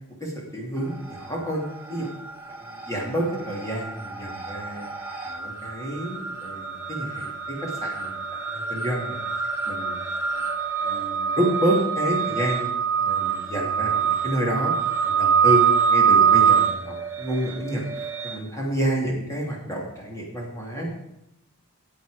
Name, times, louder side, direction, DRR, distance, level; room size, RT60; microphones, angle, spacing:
voice 1, 0.2-1.6 1.9-2.1 2.7-4.9 5.2-8.1 8.5-9.2 9.7-9.8 10.8-12.7 13.0-14.7 15.0-20.9, equal, 15° left, -3 dB, 2.7 m, -29 dB
sound 1, 0.8-1.5 1.7-18.3, right 7 dB, 10° right, 1.4 m, -25 dB
14.5 x 8.6 x 5.0 m, 0.84 s
head